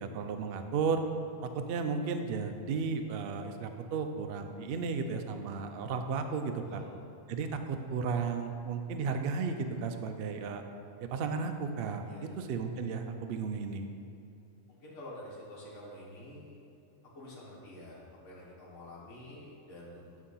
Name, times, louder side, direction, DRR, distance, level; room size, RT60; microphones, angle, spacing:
voice 1, 0.0-1.0 1.4-6.8 7.3-10.6 11.0-13.9, right 5 dB, 75° right, 6 dB, 0.5 m, -34 dB
voice 2, 12.0-12.4 14.7-16.6 17.1-20.2, left 1 dB, 55° left, -6 dB, 1.7 m, -48 dB
9.0 x 3.6 x 5.5 m, 2.6 s
omnidirectional pair, 1.5 m